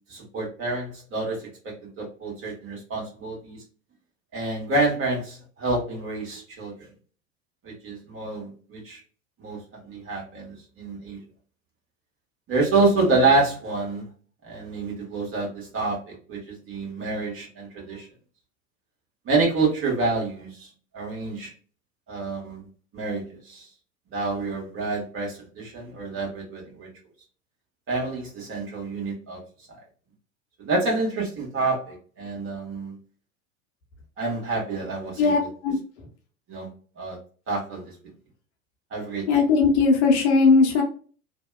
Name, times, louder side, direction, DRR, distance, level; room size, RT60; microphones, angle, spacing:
voice 1, 0.1-3.6 4.3-6.7 7.6-9.0 9.4-11.2 12.5-14.0 14.4-18.1 19.2-21.5 22.1-22.6 22.9-23.7 24.1-26.9 27.9-29.4 30.6-33.0 34.2-35.5 36.5-36.7 37.0-37.2 37.5-37.9 38.9-39.3, right 3 dB, 35° right, -2 dB, 1.3 m, -27 dB
voice 2, 35.2-35.8 39.3-40.8, left 4 dB, 60° left, 2 dB, 0.8 m, -19 dB
2.7 x 2.1 x 2.2 m, 0.40 s
figure-of-eight pair, 80°, 39 cm